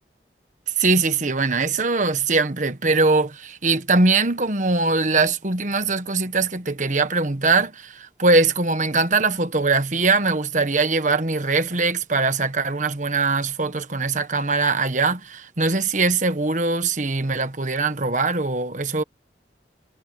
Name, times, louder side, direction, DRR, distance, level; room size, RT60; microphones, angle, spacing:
voice 1, 0.8-19.0, right 3 dB, 45° right, 1.4 m, -21 dB
head